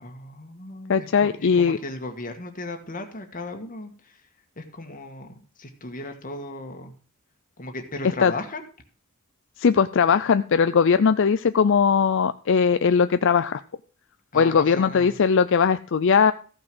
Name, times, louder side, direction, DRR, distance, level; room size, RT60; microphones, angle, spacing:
voice 1, 0.0-4.3 4.6-6.9 7.6-8.6 14.3-15.2, left 2 dB, 40° left, 5 dB, 1.6 m, -36 dB
voice 2, 0.9-1.8 8.2-8.3 9.6-13.6 14.3-16.3, left 6 dB, 60° left, 11 dB, 0.4 m, -19 dB
14.5 x 6.1 x 6.2 m, 0.41 s
head